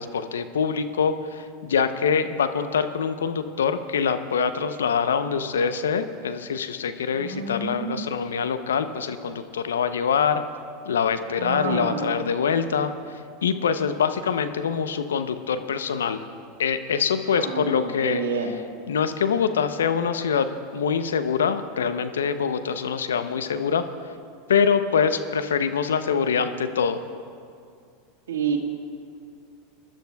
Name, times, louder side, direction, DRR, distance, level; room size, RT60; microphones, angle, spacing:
voice 1, 0.0-10.4 10.8-16.2 16.6-18.2 18.9-23.8 24.5-27.0, left 6 dB, 85° left, 10 dB, 0.6 m, -24 dB
voice 2, 7.2-8.0 11.3-12.2 17.3-18.6 28.3-28.6, right 5 dB, 85° right, 2 dB, 1.6 m, -29 dB
25.0 x 11.5 x 2.3 m, 2.3 s
hypercardioid pair, 95°, 0 cm